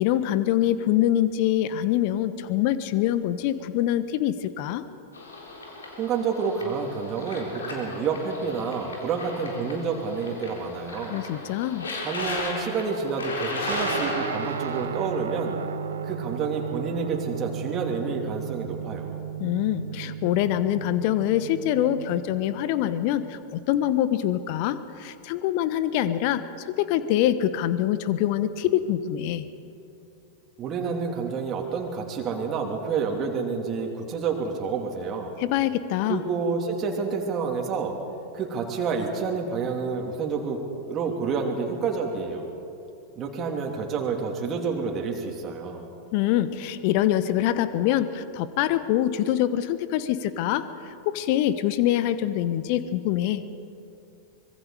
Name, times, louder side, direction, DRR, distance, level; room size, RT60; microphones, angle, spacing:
voice 1, 0.0-4.8 11.1-11.9 19.4-29.5 35.4-36.2 46.1-53.4, left 12 dB, 45° left, 13 dB, 1.1 m, -25 dB
sound 1, 5.1-14.8, left 2 dB, 70° left, 3.9 m, -35 dB
voice 2, 6.0-11.2 12.0-15.6 16.0-19.1 30.6-35.3 36.0-37.9 38.3-40.6 40.9-42.4 43.2-45.8, right 5 dB, 30° right, 1 dB, 2.8 m, -29 dB
Guitar, 13.7-23.4, right 8 dB, 65° right, 1.1 m, -35 dB
25.0 x 22.0 x 5.0 m, 2.6 s
figure-of-eight pair, 90°, 0 cm